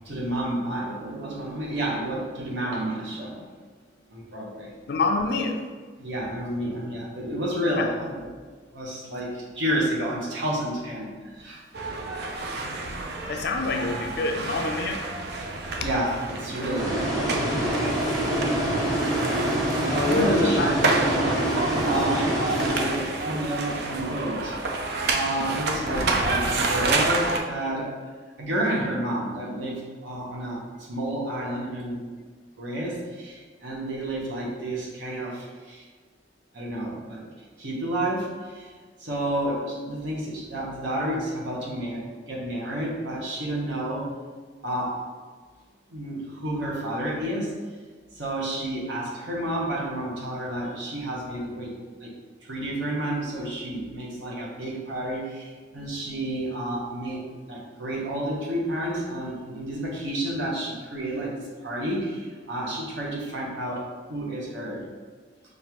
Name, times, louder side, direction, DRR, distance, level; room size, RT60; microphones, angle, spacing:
voice 1, 0.0-3.5 4.1-4.7 6.0-8.3 8.7-11.6 11.9-12.0 15.8-17.2 20.0-20.9 21.8-24.5 25.0-28.0 28.4-30.6 30.9-32.0 32.6-35.9 36.5-37.3 37.6-38.7 39.0-44.2 44.6-45.0 45.9-47.5 48.1-51.7 52.0-52.1 52.4-64.9, right 1 dB, 80° right, -3 dB, 1.1 m, -30 dB
voice 2, 4.9-5.6 7.8-7.9 13.3-15.0 19.9-20.8, left 3 dB, 60° left, 3 dB, 0.5 m, -26 dB
sound 1, 11.7-27.4, right 3 dB, 60° right, 0.5 m, -29 dB
sound 2, 16.8-23.4, right 1 dB, 20° right, 0.9 m, -26 dB
5.3 x 2.5 x 2.9 m, 1.5 s
head